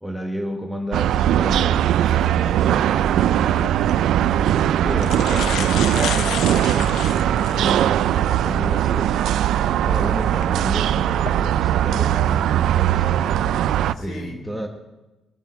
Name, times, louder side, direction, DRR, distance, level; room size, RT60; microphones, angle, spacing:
voice 1, 0.0-1.9 4.8-6.9 7.3-9.3 9.8-13.2 13.9-14.7, equal, ahead, 4 dB, 1.1 m, -31 dB
ohio city, 0.9-13.9, right 11 dB, 80° right, 0.4 m, -20 dB
voice 2, 1.9-3.9 13.9-14.4, left 1 dB, 60° left, 1 dB, 4.3 m, -39 dB
sound 1, 3.5-3.7 4.5-4.6 4.9-7.7 8.3-8.4 10.2-10.4 11.0-11.3, left 9 dB, 85° left, 0.8 m, -30 dB
22.0 x 9.1 x 4.7 m, 1.1 s
cardioid pair, 110°, 0 cm